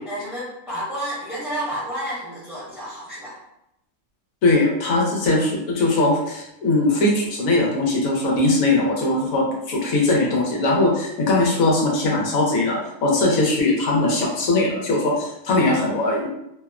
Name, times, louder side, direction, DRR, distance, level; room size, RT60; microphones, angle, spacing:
voice 1, 0.1-3.4, equal, ahead, -9 dB, 0.8 m, -30 dB
voice 2, 4.4-16.3, left 2 dB, 80° left, -2 dB, 1.1 m, -20 dB
2.7 x 2.0 x 2.3 m, 0.82 s
omnidirectional pair, 1.4 m